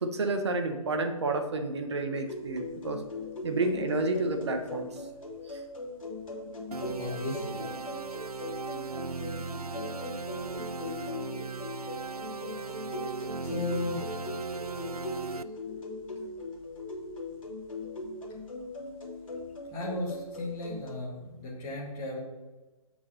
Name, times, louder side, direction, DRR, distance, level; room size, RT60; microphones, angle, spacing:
voice 1, 0.0-3.0 3.4-4.9 5.5-5.6, right 2 dB, 50° right, 6 dB, 1.2 m, -30 dB
sound 1, 2.2-20.9, left 2 dB, 60° left, 2.5 m, -40 dB
sound 2, 6.7-15.4, right 4 dB, 85° right, 0.4 m, -38 dB
voice 2, 7.0-7.9 13.4-14.1 19.7-22.2, left 2 dB, 15° left, -4 dB, 1.9 m, -35 dB
6.7 x 5.5 x 6.8 m, 1.2 s
figure-of-eight pair, 140°, 19 cm